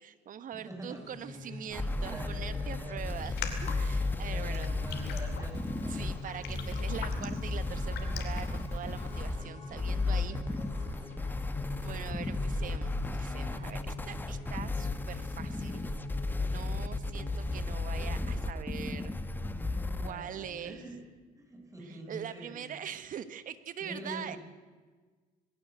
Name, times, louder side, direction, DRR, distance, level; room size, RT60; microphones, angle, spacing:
voice 1, 0.0-3.3 3.7-4.7 5.9-10.4 11.8-15.8 16.4-19.1 20.0-20.8 21.9-24.4, right 9 dB, 50° right, 13 dB, 1.3 m, -43 dB
voice 2, 0.5-3.1 4.3-6.1 9.9-11.2 19.5-21.0 21.3-22.8 23.8-24.4, right 1 dB, 20° right, 1 dB, 6.3 m, -46 dB
sound 1, 0.9-17.6, left 3 dB, 40° left, 7.6 m, -44 dB
sound 2, 1.7-20.1, left 2 dB, 10° left, 1.1 m, -34 dB
Raindrop, 3.1-9.3, left 8 dB, 70° left, 2.6 m, -45 dB
20.0 x 16.5 x 8.1 m, 1.4 s
cardioid pair, 110°, 17 cm